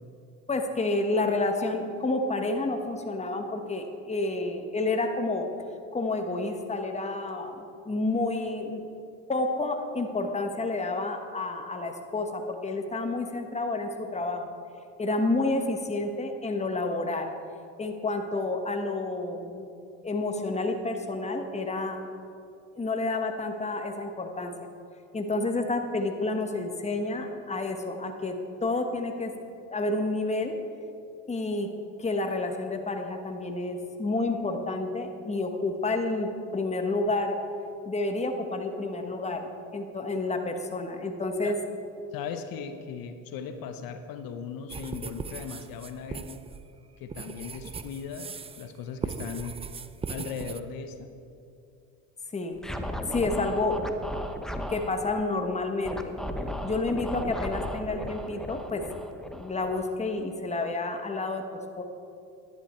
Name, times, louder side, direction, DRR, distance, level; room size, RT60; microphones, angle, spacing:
voice 1, 0.5-5.5 5.9-8.8 9.3-14.5 15.0-17.3 17.8-19.7 20.0-22.1 22.8-24.5 25.1-29.3 29.7-30.6 31.3-31.7 32.0-37.4 37.8-41.5 52.3-52.6 53.1-53.9 54.7-56.1 56.6-58.8 59.3-61.4 61.8-61.9, left 2 dB, 20° left, 5 dB, 1.2 m, -29 dB
voice 2, 42.1-46.4 47.0-49.6 50.1-51.1, left 6 dB, 70° left, 8 dB, 0.9 m, -38 dB
sound 1, 44.7-48.7 49.0-50.6, right 5 dB, 15° right, 0.3 m, -38 dB
Scratching (performance technique), 52.6-54.9 55.8-60.2, equal, ahead, 0.8 m, -35 dB
11.5 x 10.5 x 4.4 m, 2.5 s
supercardioid pair, 90°, 36 cm